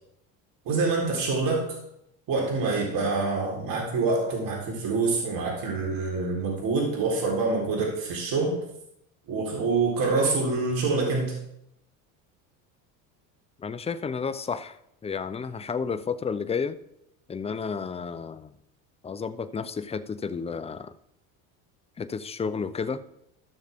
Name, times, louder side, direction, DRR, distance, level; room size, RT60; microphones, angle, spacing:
voice 1, 0.7-1.7 2.3-8.6 9.3-11.3, right 3 dB, 55° right, -2 dB, 4.0 m, -26 dB
voice 2, 13.6-14.8 15.0-16.8 17.3-18.5 19.0-20.9 22.0-23.0, left 5 dB, 15° left, 12 dB, 0.6 m, -31 dB
15.0 x 6.5 x 3.6 m, 0.79 s
supercardioid pair, 100°, 40 cm